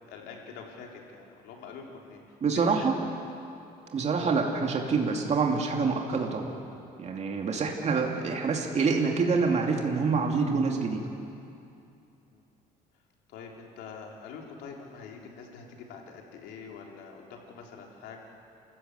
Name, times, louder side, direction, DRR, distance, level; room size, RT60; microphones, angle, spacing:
voice 1, 0.1-2.9 12.3-12.5 13.3-18.2, left 5 dB, 85° left, 0 dB, 3.7 m, -45 dB
voice 2, 2.4-2.9 3.9-6.6 7.0-11.1, right 4 dB, 40° right, 1 dB, 2.6 m, -26 dB
30.0 x 15.0 x 8.2 m, 2.7 s
cardioid pair, 110°, 17 cm